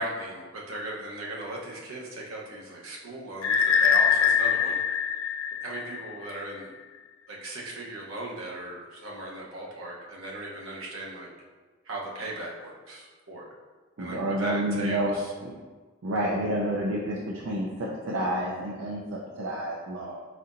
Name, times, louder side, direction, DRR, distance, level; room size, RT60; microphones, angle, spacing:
voice 1, 0.0-4.8 5.6-6.7 7.3-11.3 11.8-13.5 14.0-15.3, right 1 dB, 90° right, -3 dB, 0.9 m, -37 dB
sound 1, 3.4-6.3, left 7 dB, 75° left, 0.4 m, -23 dB
voice 2, 14.0-15.2 15.4-15.5 16.0-20.2, right 1 dB, 70° right, -4 dB, 0.5 m, -29 dB
4.2 x 4.0 x 2.5 m, 1.3 s
head